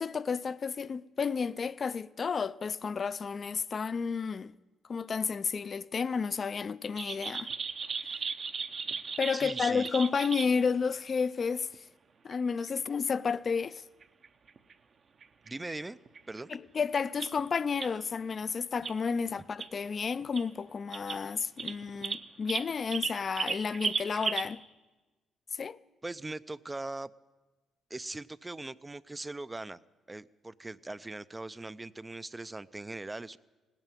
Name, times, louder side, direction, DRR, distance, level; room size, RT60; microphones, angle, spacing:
voice 1, 0.0-4.5 4.9-7.5 9.2-11.7 12.2-13.8 16.5-24.6 25.6-25.8, left 5 dB, 40° left, 0.4 m, -31 dB
sound 1, 7.0-10.5 11.7-11.8 12.3-12.4 12.7-12.8 13.1-13.2 13.5-13.6 14.0-14.7 15.2-15.7 16.1-16.4 17.0-17.4 17.8-17.9 18.8-19.0 19.6-19.7 20.2-20.5 20.9-21.2 21.6-24.5, right 5 dB, 50° right, 0.8 m, -36 dB
voice 2, 9.3-9.9 15.4-16.0 16.3-16.6 26.0-27.1 27.9-29.8 30.1-33.4, right 2 dB, 15° right, 0.4 m, -40 dB
17.5 x 9.0 x 9.1 m
cardioid pair, 90°, 0 cm